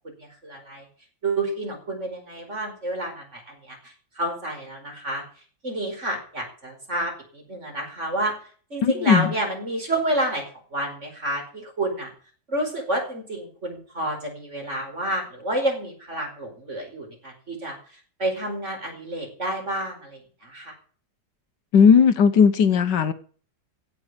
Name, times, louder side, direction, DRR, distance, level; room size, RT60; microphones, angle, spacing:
voice 1, 0.2-0.9 1.2-5.2 5.6-8.3 8.7-10.4 10.7-12.1 12.5-17.8 18.2-20.7, right 1 dB, 40° right, 2 dB, 5.3 m, -29 dB
voice 2, 8.8-9.3 21.7-23.1, left 6 dB, 75° left, 12 dB, 1.7 m, -17 dB
16.0 x 6.5 x 9.5 m, 0.43 s
omnidirectional pair, 2.0 m